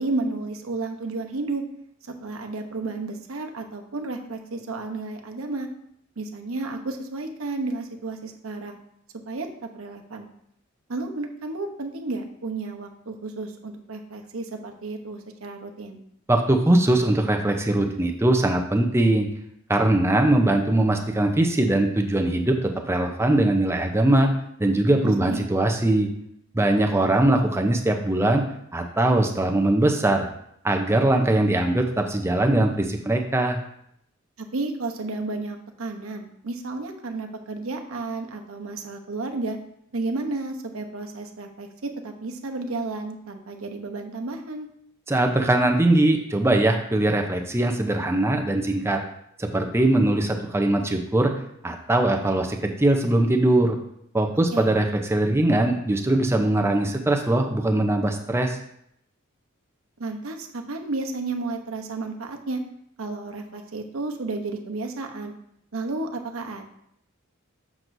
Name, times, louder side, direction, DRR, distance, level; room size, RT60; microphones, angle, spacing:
voice 1, 0.0-1.6 2.0-5.7 6.2-8.8 9.3-10.3 10.9-16.0 25.0-25.5 34.4-39.6 39.9-44.7 54.5-54.7 60.0-62.6 63.0-65.3 65.7-66.6, right 3 dB, 85° right, 4 dB, 0.9 m, -32 dB
voice 2, 16.3-19.3 19.7-22.6 22.9-24.3 24.6-26.1 26.5-28.4 28.7-30.3 30.6-33.6 45.1-49.0 49.4-51.3 51.6-53.8 54.1-58.6, right 1 dB, 10° right, 3 dB, 0.6 m, -21 dB
7.5 x 6.1 x 2.7 m, 0.72 s
head